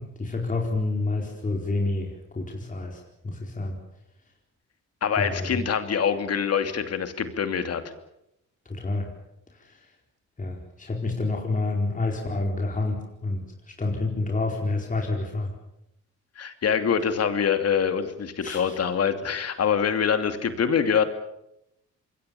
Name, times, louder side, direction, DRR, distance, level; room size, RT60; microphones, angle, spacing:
voice 1, 0.0-3.8 5.2-5.6 8.6-9.1 9.6-9.7 10.4-15.5 18.4-18.8, left 2 dB, 25° left, 0 dB, 4.6 m, -29 dB
voice 2, 5.0-7.8 16.4-21.0, left 7 dB, 55° left, 8 dB, 2.8 m, -25 dB
26.5 x 22.0 x 7.1 m, 0.81 s
cardioid pair, 90°, 30 cm